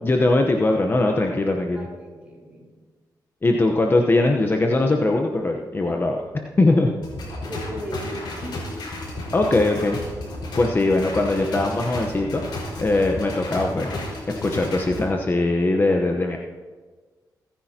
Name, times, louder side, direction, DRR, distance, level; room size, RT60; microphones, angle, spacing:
voice 1, 0.0-1.9 3.4-6.2 6.6-6.9 9.3-10.0 10.5-12.4 12.8-14.0 14.4-16.4, left 2 dB, 30° left, 2 dB, 0.9 m, -21 dB
voice 2, 1.7-2.7 6.7-6.8 7.4-8.7, equal, 15° right, -3 dB, 4.4 m, -36 dB
sound 1, 7.0-15.0, left 2 dB, 80° left, 4.8 m, -33 dB
23.0 x 10.5 x 2.9 m, 1.4 s
cardioid pair, 100°, 8 cm